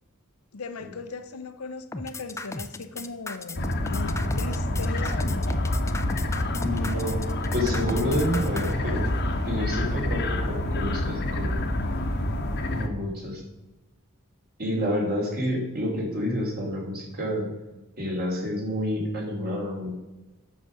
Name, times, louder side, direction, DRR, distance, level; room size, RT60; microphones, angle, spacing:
voice 1, 0.5-5.6, left 3 dB, 80° left, 10 dB, 0.8 m, -38 dB
sound 1, 1.9-8.7, left 2 dB, 15° left, 0.5 m, -35 dB
sound 2, 3.6-12.9, left 1 dB, 50° left, 1.1 m, -27 dB
voice 2, 6.6-9.1 9.4-11.6 12.7-13.4 14.6-17.5 18.0-19.9, equal, 45° right, -1 dB, 3.0 m, -29 dB
9.4 x 6.9 x 6.3 m, 1.1 s
head